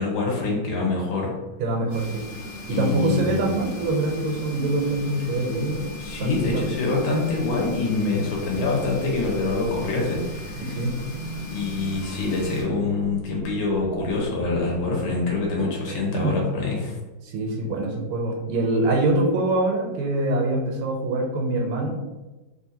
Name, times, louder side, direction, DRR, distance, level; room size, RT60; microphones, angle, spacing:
voice 1, 0.0-1.3 2.7-3.6 6.0-10.8 11.5-17.0, left 3 dB, 80° left, -1 dB, 1.5 m, -25 dB
voice 2, 1.6-2.2 2.7-5.9 6.2-6.7 10.5-10.9 15.6-16.4 17.2-22.0, right 2 dB, 80° right, 0 dB, 1.4 m, -24 dB
sound 1, 1.9-12.6, left 1 dB, 55° left, 1.3 m, -38 dB
sound 2, 8.4-16.1, right 3 dB, 30° left, 1.1 m, -39 dB
3.4 x 2.5 x 2.7 m, 1.1 s
omnidirectional pair, 2.3 m